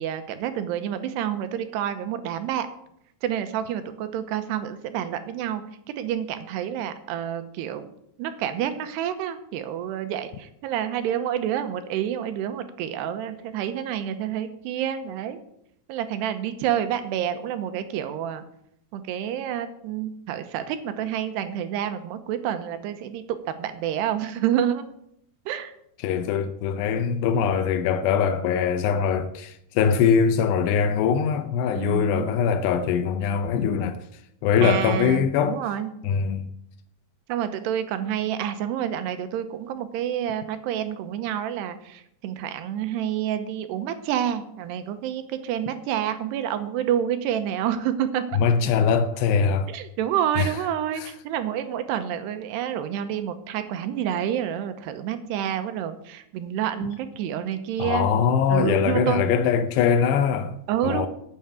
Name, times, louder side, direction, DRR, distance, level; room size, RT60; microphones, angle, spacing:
voice 1, 0.0-2.7 3.2-5.6 6.0-7.9 8.2-15.4 15.9-18.4 18.9-24.8 25.5-25.7 31.7-32.3 34.6-35.9 37.3-48.2 49.7-58.1 58.5-59.3 60.7-61.1, right 10 dB, 90° right, 3.1 m, -28 dB
voice 2, 26.0-34.0 34.4-35.6 36.0-36.5 48.4-49.7 50.4-50.5 51.0-51.1 57.8-60.6 60.8-61.1, left 7 dB, 85° left, 2.9 m, -22 dB
9.4 x 7.8 x 9.0 m
omnidirectional pair, 4.7 m